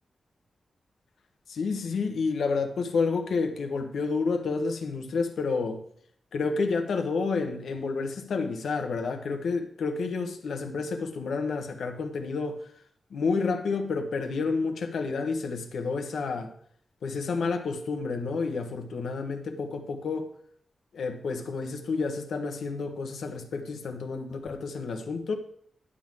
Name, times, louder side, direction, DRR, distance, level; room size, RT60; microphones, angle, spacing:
voice 1, 1.5-5.8 6.3-12.7 13.1-16.5 17.0-20.3 20.9-25.4, left 4 dB, 80° left, 1.2 m, -30 dB
11.0 x 3.8 x 7.6 m
wide cardioid pair, 175°, 0 cm